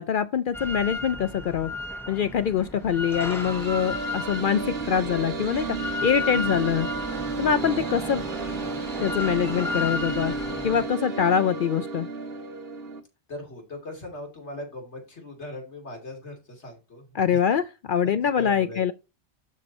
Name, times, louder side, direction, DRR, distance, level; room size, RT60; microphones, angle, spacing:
voice 1, 0.0-1.7 2.1-6.9 7.4-8.2 9.0-10.3 10.6-12.1 17.1-18.9, left 8 dB, 60° left, 0.6 m, -24 dB
Drill, 0.5-10.9, left 2 dB, ahead, 0.9 m, -34 dB
sound 1, 2.7-13.0, right 4 dB, 60° right, 1.6 m, -33 dB
voice 2, 13.3-17.4 18.0-18.8, left 2 dB, 75° left, 3.3 m, -39 dB
11.5 x 4.4 x 4.2 m
omnidirectional pair, 1.2 m